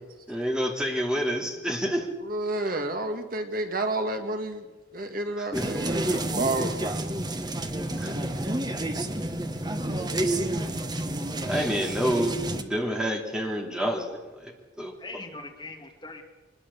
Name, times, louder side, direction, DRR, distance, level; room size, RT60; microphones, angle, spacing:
voice 1, 0.3-2.1 5.4-5.7 8.0-8.2 11.5-14.5 14.8-14.9, equal, 5° right, 2 dB, 2.9 m, -28 dB
voice 2, 2.2-4.7 4.9-7.1, right 2 dB, 50° right, 6 dB, 2.0 m, -30 dB
sound 1, 5.5-12.6, right 1 dB, 20° right, 1.3 m, -29 dB
voice 3, 8.7-9.3 9.9-10.5 15.0-16.2, left 2 dB, 25° left, 3 dB, 2.4 m, -43 dB
23.5 x 21.0 x 7.2 m, 1.2 s
head